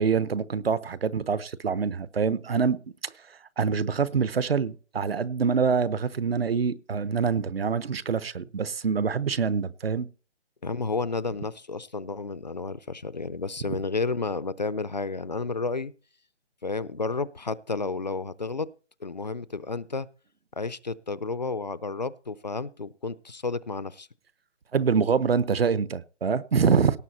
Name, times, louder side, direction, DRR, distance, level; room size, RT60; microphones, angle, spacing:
voice 1, 0.0-2.8 3.0-10.1 24.7-27.0, right 6 dB, 60° right, 1.0 m, -25 dB
voice 2, 10.6-15.9 16.6-18.7 19.0-20.1 20.6-24.1, left 3 dB, 40° left, 0.5 m, -31 dB
18.0 x 7.2 x 4.2 m
hypercardioid pair, 175°, 35 cm